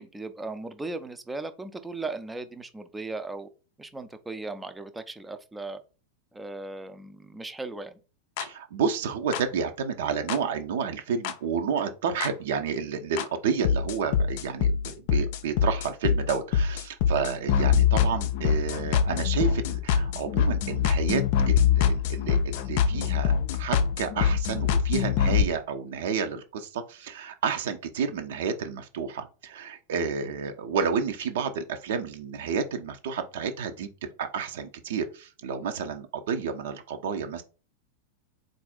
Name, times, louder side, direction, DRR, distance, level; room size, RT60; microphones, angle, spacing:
voice 1, 0.0-3.5 3.8-5.8 6.3-8.0, right 3 dB, 10° right, 0.5 m, -37 dB
sound 1, 8.4-8.5 9.3-9.4 10.3-10.4 11.2-11.3 12.2-12.3 13.2-13.3 13.6-25.4, left 7 dB, 50° left, 0.5 m, -24 dB
voice 2, 8.4-33.9 34.2-37.4, right 6 dB, 55° right, 0.6 m, -30 dB
4.1 x 2.5 x 3.9 m
figure-of-eight pair, 90°, 0 cm